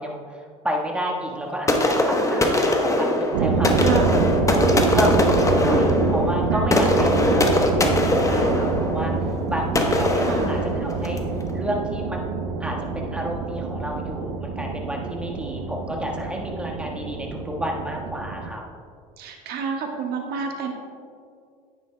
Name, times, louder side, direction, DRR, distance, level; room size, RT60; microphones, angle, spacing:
voice 1, 0.0-3.7 4.0-4.3 4.9-11.2 11.5-12.2 12.6-18.6, equal, 5° right, -1 dB, 1.5 m, -31 dB
sound 1, 1.7-11.3, left 1 dB, 15° left, 1.0 m, -21 dB
sound 2, 3.3-18.5, right 4 dB, 75° right, 0.7 m, -26 dB
voice 2, 3.8-4.3 6.5-7.2 10.2-10.5 19.2-20.7, right 5 dB, 55° right, 2 dB, 1.5 m, -30 dB
9.7 x 9.7 x 2.3 m, 2.2 s
hypercardioid pair, 70°, 19 cm